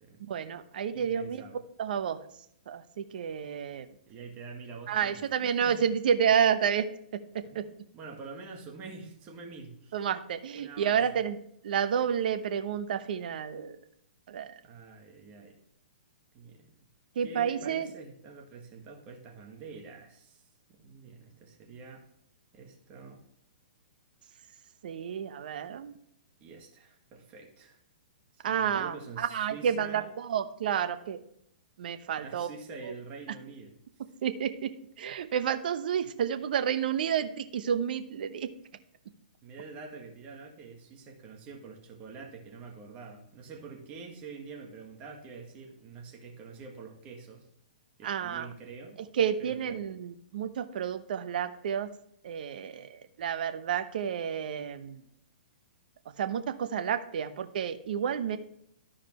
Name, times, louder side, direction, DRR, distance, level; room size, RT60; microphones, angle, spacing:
voice 1, 0.3-1.4 1.8-2.2 2.7-3.9 4.9-7.7 9.9-11.4 11.6-13.8 14.3-14.5 17.2-17.9 24.8-26.0 28.4-31.2 31.8-32.5 32.8-32.9 34.2-38.5 48.0-48.5 49.1-51.9 52.2-55.0 56.2-58.4, right 8 dB, 65° right, 9 dB, 0.9 m, -30 dB
voice 2, 0.9-1.6 4.1-5.3 5.6-5.8 7.4-7.6 7.9-10.0 10.6-11.0 14.6-15.6 16.3-16.7 17.2-20.4 20.7-22.0 22.5-23.2 26.4-27.8 28.3-30.1 32.0-33.8 39.4-47.5 48.0-49.0 49.4-49.8, right 4 dB, 30° right, 1 dB, 1.7 m, -46 dB
13.5 x 5.0 x 3.1 m, 0.71 s
hypercardioid pair, 145°, 5 cm